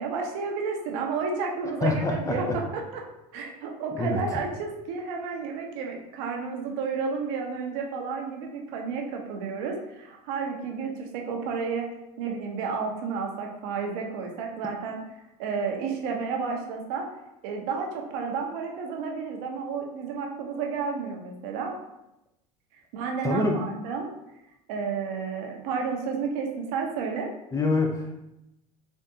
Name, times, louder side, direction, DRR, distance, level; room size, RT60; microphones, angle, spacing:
voice 1, 0.0-3.0 3.3-11.8 12.2-15.0 15.4-17.1 17.4-21.7 22.9-24.1 24.7-27.3, right 5 dB, 70° right, 2 dB, 0.7 m, -31 dB
voice 2, 1.8-2.6 4.0-4.2 23.2-23.7 27.5-28.2, left 2 dB, 20° left, 2 dB, 0.5 m, -26 dB
3.5 x 2.6 x 2.7 m, 0.88 s
hypercardioid pair, 80°, 18 cm